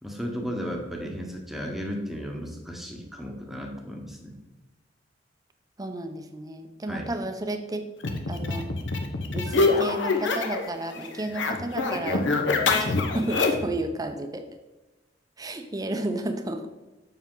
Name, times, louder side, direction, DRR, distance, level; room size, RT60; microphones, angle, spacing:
voice 1, 0.0-4.4 6.9-7.1 12.5-12.7, equal, ahead, 0 dB, 1.0 m, -34 dB
voice 2, 5.8-7.8 8.3-8.7 9.3-12.2 12.7-12.9 13.1-14.4 15.4-16.7, right 1 dB, 20° right, 7 dB, 0.6 m, -32 dB
sound 1, 8.0-10.7 11.0-13.7, left 3 dB, 75° left, 0.8 m, -25 dB
7.3 x 5.7 x 3.8 m, 1.1 s
head